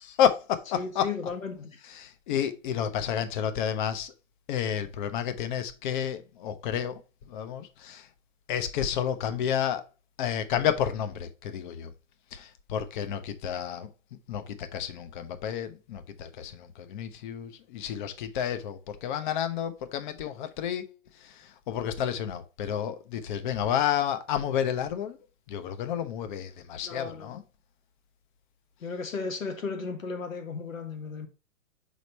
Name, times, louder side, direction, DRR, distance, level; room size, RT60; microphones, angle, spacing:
voice 1, 0.0-1.1 2.0-4.1 4.5-7.0 7.3-8.1 8.5-9.8 10.2-11.9 12.3-13.9 14.3-20.9 21.2-25.2 25.5-27.4, left 9 dB, 40° left, 0.9 m, -30 dB
voice 2, 0.7-1.8 26.8-27.3 28.8-31.3, left 4 dB, 85° left, 1.6 m, -35 dB
5.1 x 4.2 x 4.5 m
hypercardioid pair, 130°, 39 cm